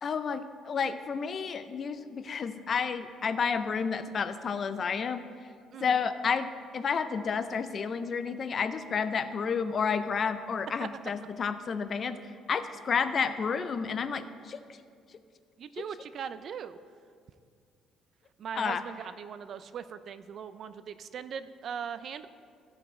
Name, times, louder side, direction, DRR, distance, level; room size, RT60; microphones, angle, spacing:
voice 1, 0.0-5.3 5.8-12.2 12.5-14.6 18.5-18.8, left 6 dB, 35° left, 11 dB, 0.4 m, -31 dB
voice 2, 5.7-6.1 15.6-16.8 18.4-22.3, right 7 dB, 45° right, 13 dB, 0.4 m, -40 dB
15.5 x 5.3 x 4.3 m, 2.2 s
cardioid pair, 145°, 0 cm